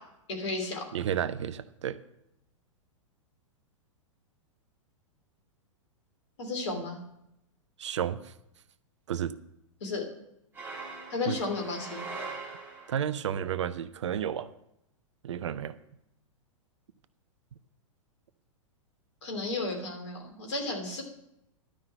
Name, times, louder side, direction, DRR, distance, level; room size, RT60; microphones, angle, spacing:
voice 1, 0.3-0.8 6.4-7.0 9.8-10.0 11.1-12.0 19.2-21.0, left 3 dB, 60° left, 3 dB, 3.0 m, -33 dB
voice 2, 0.9-2.0 7.8-8.3 9.1-9.3 11.3-11.4 12.9-14.5 15.2-15.8, right 9 dB, 60° right, 16 dB, 0.6 m, -32 dB
sound 1, 10.5-13.2, right 3 dB, 10° right, 3.7 m, -41 dB
12.0 x 5.7 x 7.6 m, 0.81 s
figure-of-eight pair, 100°, 17 cm